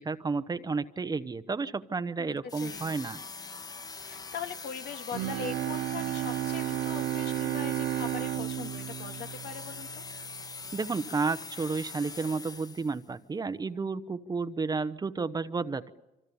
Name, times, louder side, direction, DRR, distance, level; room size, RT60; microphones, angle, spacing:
voice 1, 0.0-3.2 10.7-15.9, right 4 dB, 25° right, 12 dB, 1.0 m, -32 dB
voice 2, 2.2-2.9 4.0-10.0, left 7 dB, 70° left, 5 dB, 2.5 m, -41 dB
sound 1, 2.5-13.1, left 4 dB, 20° left, 0.8 m, -43 dB
Bowed string instrument, 5.1-10.3, right 14 dB, 70° right, 0.8 m, -33 dB
26.5 x 25.5 x 7.1 m, 0.98 s
cardioid pair, 110°, 17 cm